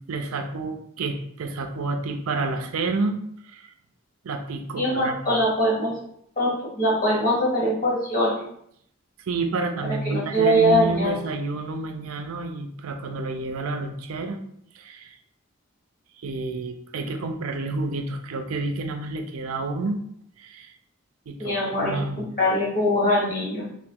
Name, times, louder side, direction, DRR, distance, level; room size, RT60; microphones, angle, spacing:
voice 1, 0.1-3.2 3.5-3.7 4.2-5.4 9.3-14.4 14.7-15.2 16.2-20.0 20.4-20.7 21.3-22.3, right 3 dB, 85° right, 6 dB, 0.4 m, -29 dB
voice 2, 4.7-6.0 6.4-8.5 9.8-11.2 21.4-23.7, equal, 40° left, -4 dB, 1.2 m, -22 dB
2.9 x 2.4 x 3.6 m, 0.69 s
head